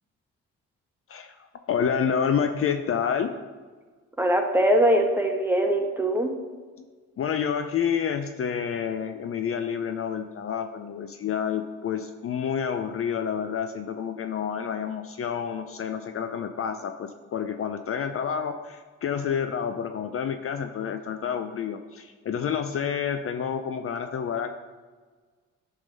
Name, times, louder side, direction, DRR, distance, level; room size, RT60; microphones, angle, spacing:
voice 1, 1.1-3.3 7.2-24.6, left 7 dB, 45° left, 7 dB, 0.5 m, -29 dB
voice 2, 4.2-6.3, right 1 dB, 5° right, 2 dB, 1.2 m, -22 dB
10.5 x 3.7 x 5.4 m, 1.4 s
cardioid pair, 90°, 30 cm